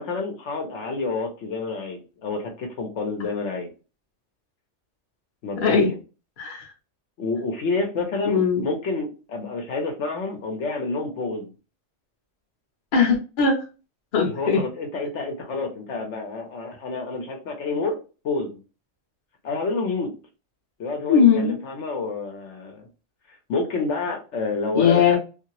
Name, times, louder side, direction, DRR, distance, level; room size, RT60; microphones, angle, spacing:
voice 1, 0.0-3.7 5.4-6.0 7.2-11.5 14.2-18.0 18.2-18.6 19.4-20.1 20.8-22.9 23.5-25.2, left 3 dB, 70° left, 3 dB, 1.0 m, -28 dB
voice 2, 6.4-6.7 8.2-8.6 12.9-13.6 14.1-14.6 21.1-21.7 24.7-25.2, left 6 dB, 50° left, 1 dB, 0.8 m, -19 dB
2.7 x 2.6 x 2.9 m, 0.33 s
omnidirectional pair, 1.3 m